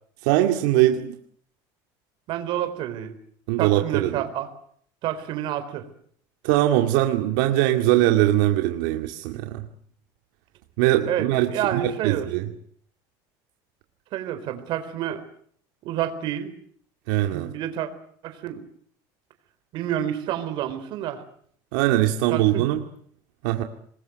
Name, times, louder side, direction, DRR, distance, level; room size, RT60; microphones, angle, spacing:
voice 1, 0.2-1.1 3.5-4.2 6.4-9.7 10.8-12.5 17.1-17.5 21.7-22.8 23.4-23.6, right 14 dB, 80° right, 5 dB, 2.2 m, -21 dB
voice 2, 2.3-3.1 3.6-4.5 5.0-5.9 11.1-12.3 14.1-15.2 15.8-16.5 17.3-17.9 18.2-18.6 19.7-21.2 22.3-22.7, right 11 dB, 50° right, 9 dB, 4.1 m, -29 dB
26.0 x 21.5 x 8.0 m, 0.62 s
cardioid pair, 155°, 10 cm